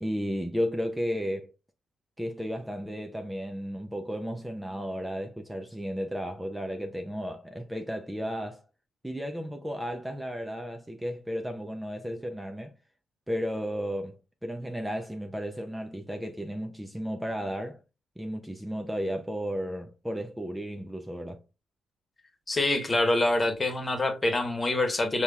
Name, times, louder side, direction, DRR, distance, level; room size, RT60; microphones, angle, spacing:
voice 1, 0.0-1.5 2.2-8.6 9.0-12.7 13.3-17.8 18.2-21.4, equal, 10° right, 0.6 m, -34 dB
voice 2, 22.5-25.2, left 2 dB, 30° left, 1.3 m, -25 dB
5.2 x 3.0 x 2.4 m
cardioid pair, 65°, 0 cm